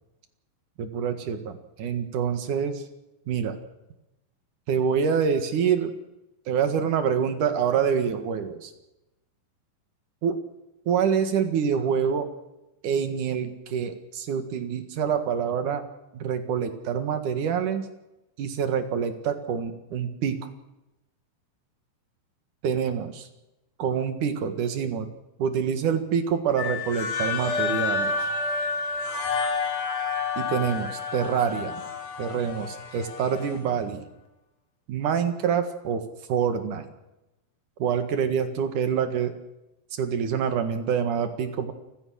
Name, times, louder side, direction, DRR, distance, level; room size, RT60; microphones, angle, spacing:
voice 1, 0.8-2.8 3.3-3.6 4.7-5.9 6.5-8.7 10.2-10.4 10.9-12.3 12.8-15.8 16.1-17.8 18.4-20.5 22.6-23.1 23.8-25.1 25.4-28.1 30.4-31.8 32.2-34.0 34.9-36.0 36.3-36.9 37.8-39.3 39.9-41.7, right 7 dB, 55° right, 8 dB, 2.7 m, -26 dB
sound 1, 26.6-33.6, left 4 dB, 45° left, 2.6 m, -29 dB
30.0 x 15.5 x 6.5 m, 0.95 s
omnidirectional pair, 5.2 m